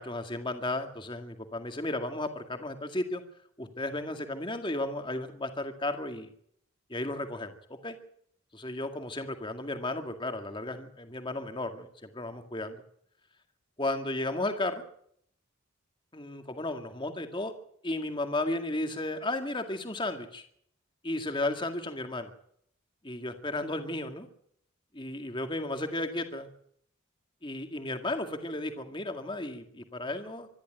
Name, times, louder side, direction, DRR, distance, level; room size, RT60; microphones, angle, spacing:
voice 1, 0.0-3.2 3.6-6.3 6.9-8.0 8.5-12.8 13.8-14.8 16.1-17.5 17.8-20.4 21.0-22.3 23.0-24.3 24.9-26.5 27.4-30.5, left 2 dB, 25° left, 6 dB, 2.0 m, -34 dB
25.5 x 12.0 x 9.0 m, 0.67 s
head